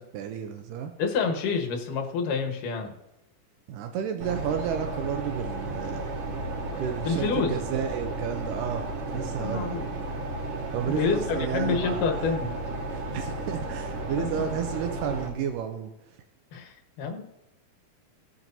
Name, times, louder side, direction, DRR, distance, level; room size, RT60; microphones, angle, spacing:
voice 1, 0.1-0.9 3.7-6.1 6.6-10.0 10.7-12.3 12.9-15.9, right 8 dB, 80° right, 6 dB, 2.3 m, -32 dB
voice 2, 1.0-2.9 7.0-7.5 9.1-9.9 10.9-12.5 14.2-14.4 16.5-17.2, left 5 dB, 80° left, 3 dB, 2.9 m, -28 dB
sound 1, 4.2-15.3, right 2 dB, 50° right, 2.4 m, -33 dB
17.0 x 7.5 x 2.7 m, 0.91 s
omnidirectional pair, 3.7 m